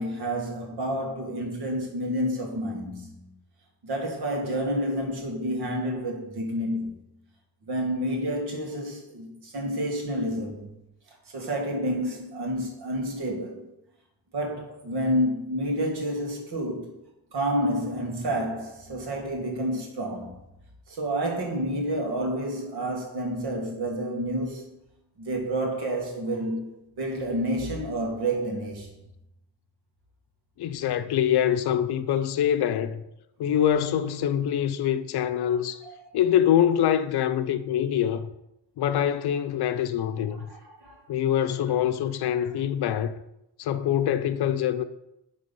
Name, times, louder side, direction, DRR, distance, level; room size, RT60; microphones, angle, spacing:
voice 1, 0.0-3.3 3.8-6.9 7.7-10.7 11.3-13.7 14.3-16.9 17.3-20.3 20.9-24.6 25.2-26.7 27.0-28.9 40.5-41.0, equal, 65° right, 2.0 m, -29 dB
voice 2, 30.6-33.0 33.4-35.8 36.1-38.3 38.8-40.5 41.1-43.2 43.6-44.8, left 10 dB, 65° left, 0.6 m, -24 dB
9.6 x 3.6 x 5.4 m
wide cardioid pair, 165°, 42 cm